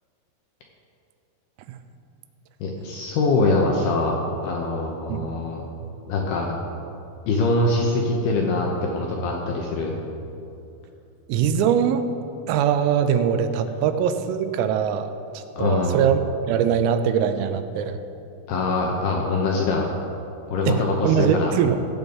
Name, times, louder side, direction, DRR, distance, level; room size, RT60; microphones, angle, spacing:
voice 1, 2.6-4.2 4.4-5.6 6.1-6.5 7.3-9.9 15.6-16.0 18.5-19.9 20.5-21.5, left 3 dB, 80° left, 0 dB, 2.3 m, -23 dB
voice 2, 11.3-12.1 12.5-16.2 16.5-18.0 20.7-21.8, right 8 dB, 85° right, 9 dB, 3.3 m, -22 dB
16.0 x 8.0 x 5.3 m, 2.8 s
omnidirectional pair, 5.8 m